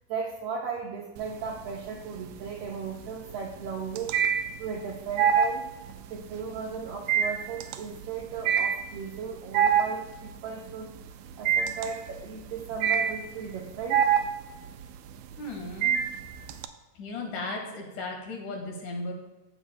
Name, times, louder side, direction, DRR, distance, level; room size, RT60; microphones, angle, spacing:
voice 1, 0.1-4.1 4.6-5.6 6.1-10.9 11.4-14.1, right 5 dB, 70° right, -1 dB, 1.6 m, -36 dB
sound 1, 1.2-1.8 2.2-16.7, right 8 dB, 90° right, 2.0 m, -26 dB
voice 2, 15.4-16.0 17.0-19.1, left 2 dB, 85° left, 1 dB, 3.2 m, -36 dB
15.5 x 7.1 x 2.2 m, 1.1 s
omnidirectional pair, 3.4 m